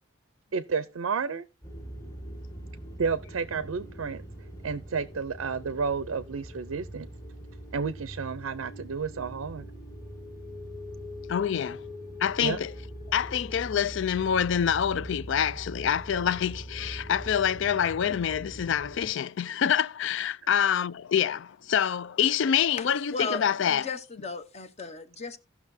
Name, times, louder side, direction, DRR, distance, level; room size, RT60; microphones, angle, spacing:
voice 1, 0.5-1.5 3.0-4.2 4.6-7.1 7.7-9.7 12.4-12.6, right 5 dB, 85° right, 0.5 m, -31 dB
sound 1, 1.6-19.1, equal, 15° left, 1.7 m, -42 dB
voice 2, 11.3-11.8 12.2-12.7 13.1-23.8, left 8 dB, 60° left, 0.4 m, -26 dB
voice 3, 22.8-25.4, left 3 dB, 30° left, 0.8 m, -36 dB
16.5 x 6.0 x 2.7 m
head